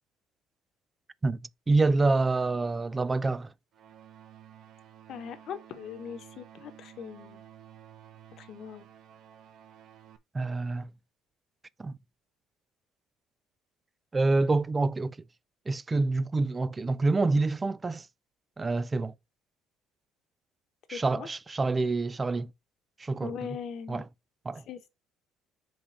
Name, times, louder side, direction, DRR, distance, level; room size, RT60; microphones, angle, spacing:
voice 1, 1.2-3.5 10.3-10.9 11.8-12.0 14.1-15.2 15.7-18.1 18.6-19.1 20.9-22.5 23.0-23.3 23.9-24.0 24.5-24.6, right 3 dB, 20° right, 0.4 m, -27 dB
sound 1, 3.7-10.2, right 10 dB, 60° right, 0.8 m, -52 dB
voice 2, 5.1-7.4 8.4-8.9 20.9-21.3 23.2-24.0 24.7-24.9, left 7 dB, 60° left, 1.1 m, -40 dB
5.1 x 3.6 x 5.7 m
cardioid pair, 105°, 0 cm